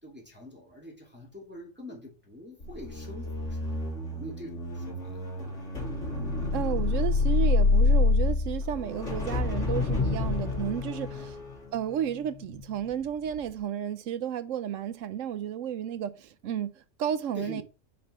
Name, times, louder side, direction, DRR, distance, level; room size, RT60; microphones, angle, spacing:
voice 1, 0.0-3.7 4.1-5.2 11.1-11.3 17.3-17.6, left 1 dB, 10° right, 2.3 m, -44 dB
sound 1, 2.6-12.9 13.3-13.6, left 3 dB, 65° left, 2.7 m, -28 dB
voice 2, 6.5-11.4 11.7-17.6, right 9 dB, 80° right, 1.0 m, -32 dB
5.5 x 5.2 x 5.7 m
omnidirectional pair, 1.3 m